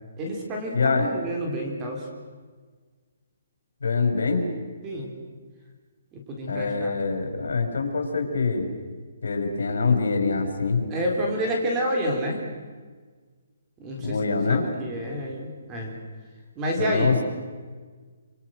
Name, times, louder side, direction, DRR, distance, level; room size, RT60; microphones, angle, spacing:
voice 1, 0.2-2.1 4.8-5.1 6.1-6.9 10.9-12.4 13.8-14.2 14.5-16.0 16.6-17.2, equal, 15° right, 1 dB, 3.9 m, -29 dB
voice 2, 0.7-1.1 3.8-4.4 6.5-8.7 9.2-10.8 14.0-14.7 16.8-17.2, left 4 dB, 85° left, 5 dB, 5.8 m, -24 dB
27.5 x 26.5 x 6.5 m, 1.5 s
hypercardioid pair, 170°, 0 cm